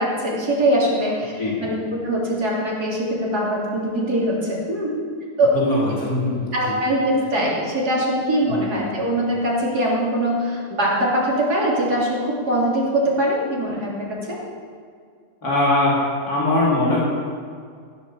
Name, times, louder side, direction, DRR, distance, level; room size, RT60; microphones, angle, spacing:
voice 1, 0.0-1.3 1.6-4.9 5.4-5.5 6.5-14.4, right 1 dB, 80° right, -4 dB, 3.7 m, -22 dB
voice 2, 1.4-1.7 5.5-6.8 8.5-8.6 15.4-17.0, left 1 dB, 70° left, -6 dB, 3.4 m, -21 dB
15.5 x 8.3 x 7.2 m, 2.1 s
omnidirectional pair, 1.6 m